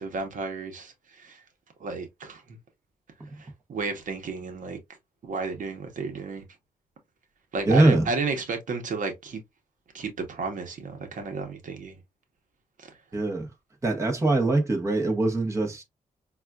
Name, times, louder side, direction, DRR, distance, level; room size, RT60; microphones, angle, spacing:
voice 1, 0.0-1.4 1.8-2.6 3.4-4.8 5.2-6.4 7.5-9.4 9.9-12.0 12.8-12.9, right 4 dB, 65° right, 0.9 m, -33 dB
voice 2, 7.6-8.1 13.1-13.5 13.8-15.8, right 2 dB, 20° right, 0.9 m, -22 dB
5.4 x 2.3 x 2.3 m
wide cardioid pair, 155°, 14 cm